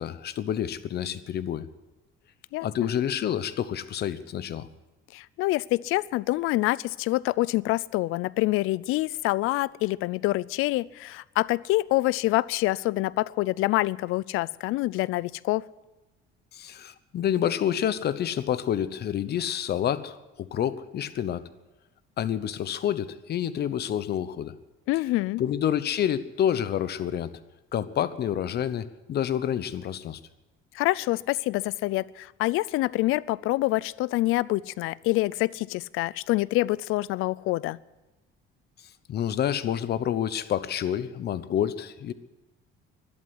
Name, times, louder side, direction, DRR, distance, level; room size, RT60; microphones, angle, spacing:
voice 1, 0.0-1.7 2.6-4.7 16.5-21.4 22.2-24.5 25.4-27.3 27.7-30.2 39.1-42.1, left 10 dB, 50° left, 14 dB, 0.9 m, -28 dB
voice 2, 2.5-2.9 5.1-15.6 24.9-25.4 30.7-37.8, left 18 dB, 80° left, 22 dB, 0.5 m, -26 dB
12.5 x 11.5 x 9.8 m, 1.1 s
cardioid pair, 120°, 21 cm